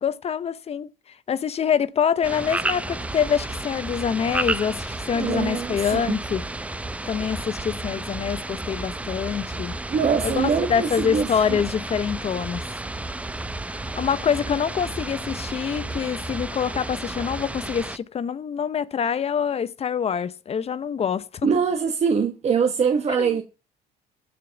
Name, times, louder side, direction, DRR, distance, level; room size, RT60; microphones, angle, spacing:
voice 1, 0.0-6.5 7.1-9.7 10.2-12.6 13.8-21.5 23.1-23.4, left 7 dB, 35° left, 0.7 m, -25 dB
sound 1, 2.2-18.0, right 2 dB, 10° right, 0.6 m, -32 dB
voice 2, 5.1-6.2 9.9-11.6 21.4-23.4, right 6 dB, 40° right, 1.3 m, -23 dB
15.0 x 5.1 x 7.0 m
cardioid pair, 110°, 17 cm